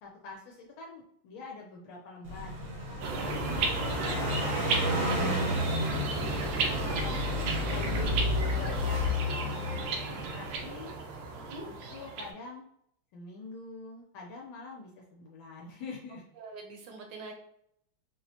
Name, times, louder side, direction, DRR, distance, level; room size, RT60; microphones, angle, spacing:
voice 1, 0.0-2.6 3.1-6.1 6.7-7.1 7.7-8.2 8.5-9.0 9.4-10.9 11.7-12.6 13.1-16.2, left 3 dB, 75° left, -1 dB, 1.4 m, -45 dB
Car passing by, 2.2-10.7, left 2 dB, 45° right, 0.8 m, -32 dB
sound 1, 3.0-12.3, right 3 dB, 85° right, 1.5 m, -34 dB
voice 2, 3.1-3.4 6.5-7.0 11.3-11.7 16.4-17.3, right 3 dB, 70° right, 2 dB, 1.3 m, -44 dB
sound 2, 7.7-9.6, left 2 dB, 40° left, 0.6 m, -38 dB
4.4 x 2.1 x 2.6 m, 0.73 s
omnidirectional pair, 2.3 m